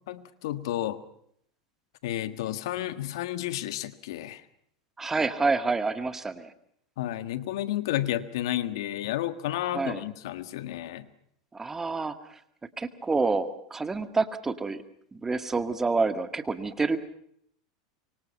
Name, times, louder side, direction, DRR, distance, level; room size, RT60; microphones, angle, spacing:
voice 1, 0.1-1.0 2.0-4.4 7.0-11.1, left 13 dB, 70° left, 13 dB, 1.5 m, -31 dB
voice 2, 5.0-6.5 9.7-10.0 11.5-12.2 12.8-14.8 15.1-17.0, right 3 dB, 15° right, 10 dB, 1.9 m, -28 dB
25.5 x 24.0 x 5.6 m, 0.69 s
hypercardioid pair, 100°, 3 cm